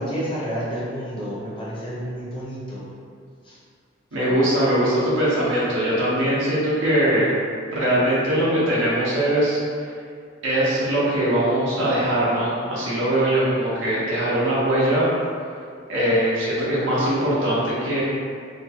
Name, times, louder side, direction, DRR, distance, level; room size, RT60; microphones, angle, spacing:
voice 1, 0.0-2.8 3.4-3.6, equal, 25° left, -7 dB, 0.6 m, -30 dB
voice 2, 4.1-7.3 7.7-9.6 10.4-15.1 15.9-18.0, right 1 dB, 85° right, -8 dB, 0.9 m, -21 dB
2.9 x 2.2 x 2.8 m, 2.2 s
head